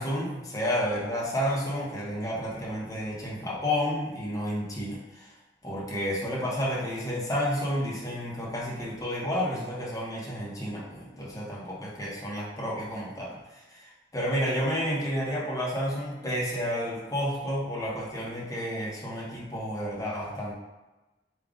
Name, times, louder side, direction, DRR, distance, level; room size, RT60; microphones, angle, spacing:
voice 1, 0.0-5.3 5.6-20.5, equal, 20° left, -5 dB, 0.8 m, -31 dB
3.6 x 2.3 x 3.6 m, 1.1 s
head